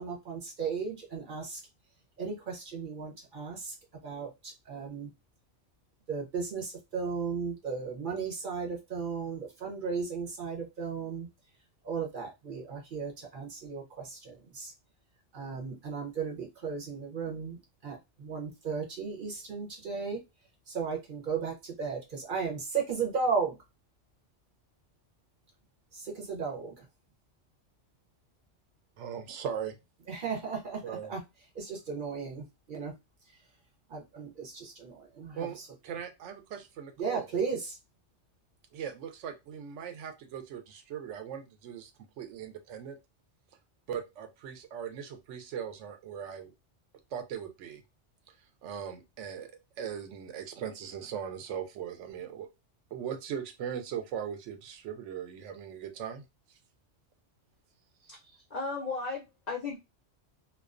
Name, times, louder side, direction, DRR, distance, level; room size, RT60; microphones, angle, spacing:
voice 1, 0.0-1.6 2.2-3.7 4.0-5.1 6.1-11.3 11.8-14.7 15.3-17.6 17.8-20.2 20.7-23.6 25.9-26.8 30.1-31.2 31.5-32.9 33.9-35.7 37.0-37.8, right 5 dB, 50° right, 0 dB, 0.8 m, -35 dB
voice 2, 29.0-29.8 30.8-31.1 35.3-35.6 35.8-37.3 38.7-41.9 42.2-43.0 43.9-46.5 47.1-47.8 48.6-49.5 49.8-52.5 52.9-56.2 56.5-56.6, right 8 dB, 80° right, 7 dB, 0.9 m, -39 dB
voice 3, 58.0-59.8, left 4 dB, 55° left, 0 dB, 0.5 m, -36 dB
2.3 x 2.2 x 2.4 m, 0.23 s
omnidirectional pair, 1.2 m